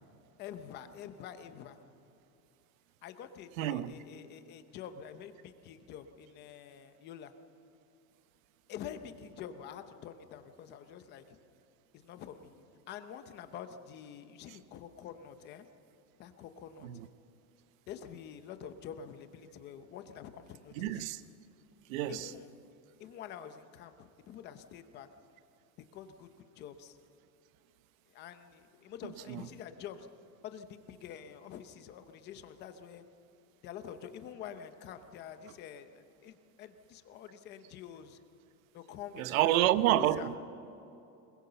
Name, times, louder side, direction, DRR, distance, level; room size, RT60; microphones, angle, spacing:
voice 1, 0.4-1.8 3.0-7.3 8.7-11.4 11.9-12.5 12.9-15.7 16.2-16.9 17.9-21.0 22.1-22.5 23.0-25.1 25.8-27.0 28.1-30.1 30.4-33.0 33.6-38.2 38.7-40.3, left 9 dB, 20° left, 0.8 m, -47 dB
voice 2, 3.6-4.0 16.8-17.1 20.8-21.2 21.9-22.3 29.3-29.5 39.2-40.4, right 13 dB, 60° right, 0.9 m, -29 dB
21.5 x 21.0 x 6.9 m
supercardioid pair, 180°, 46 cm